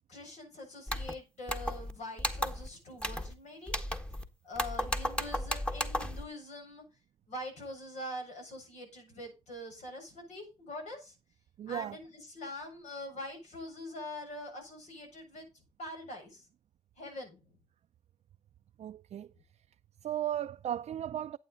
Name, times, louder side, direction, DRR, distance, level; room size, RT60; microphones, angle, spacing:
voice 1, 0.1-3.7 4.4-6.8 7.3-11.1 11.7-15.5 15.8-16.5 17.0-17.5, left 1 dB, 75° left, 7.2 m, -44 dB
sound 1, 0.9-1.1 1.5-1.9 2.2-2.7 3.0-3.3 3.7-4.2 4.6-6.2, left 1 dB, 10° left, 1.5 m, -34 dB
voice 2, 11.6-12.0 18.8-19.3 20.0-21.4, right 11 dB, 65° right, 0.5 m, -35 dB
11.0 x 8.9 x 4.0 m
cardioid pair, 75°, 12 cm